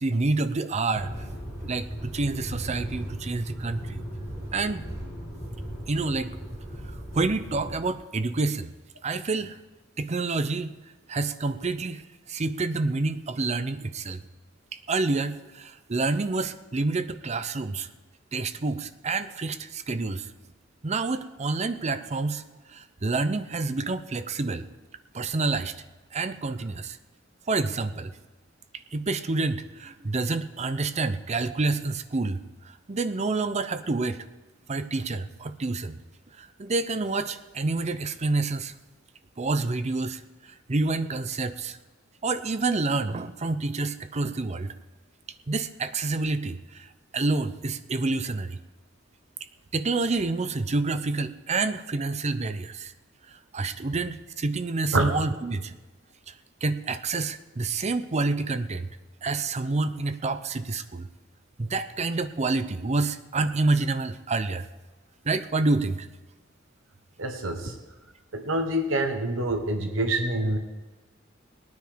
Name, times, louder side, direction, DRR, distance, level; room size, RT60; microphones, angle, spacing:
voice 1, 0.0-1.1 1.6-4.0 4.5-4.9 5.9-6.3 7.1-8.7 9.0-9.6 10.0-10.7 11.1-12.0 12.3-14.2 14.7-17.9 18.3-20.3 20.8-22.4 22.7-24.7 25.1-25.7 26.1-27.0 27.5-28.1 28.9-34.2 34.7-36.0 36.4-38.7 39.4-40.2 40.7-41.8 42.2-44.7 45.5-46.9 47.1-48.6 49.7-52.9 53.5-55.7 56.3-56.4 56.6-58.9 59.2-61.1 61.6-64.7 65.2-66.1, right 3 dB, 35° right, 12 dB, 0.6 m, -28 dB
sound 1, 0.9-7.8, equal, 15° right, 4.4 m, -37 dB
voice 2, 67.2-67.7 68.3-70.6, right 1 dB, 85° right, 6 dB, 1.2 m, -26 dB
19.0 x 9.6 x 5.1 m, 1.2 s
head